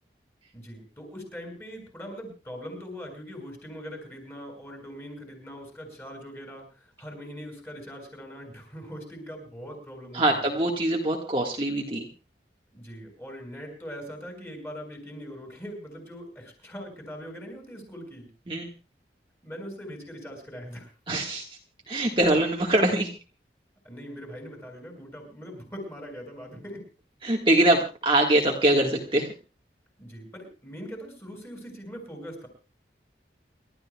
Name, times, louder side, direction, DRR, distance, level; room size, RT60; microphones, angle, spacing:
voice 1, 0.5-10.2 12.7-18.3 19.4-20.9 23.8-26.8 30.0-32.5, equal, 15° left, 2 dB, 6.4 m, -41 dB
voice 2, 10.1-12.1 18.5-18.7 21.1-21.4 21.9-23.1 27.2-29.3, right 1 dB, 30° right, 0 dB, 1.7 m, -23 dB
29.0 x 13.5 x 2.3 m, 0.32 s
head